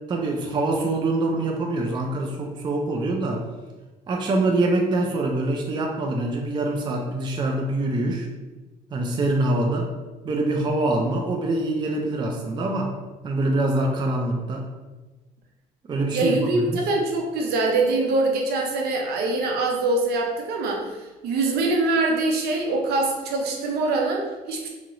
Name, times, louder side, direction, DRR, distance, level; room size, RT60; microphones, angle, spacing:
voice 1, 0.1-3.4 4.1-8.3 8.9-9.9 10.2-12.9 13.2-14.6 15.9-16.8, right 2 dB, 25° right, 2 dB, 0.4 m, -24 dB
voice 2, 16.1-20.9 21.2-24.7, right 2 dB, 70° right, 0 dB, 0.7 m, -23 dB
2.9 x 2.9 x 2.5 m, 1.2 s
cardioid pair, 110°, 17 cm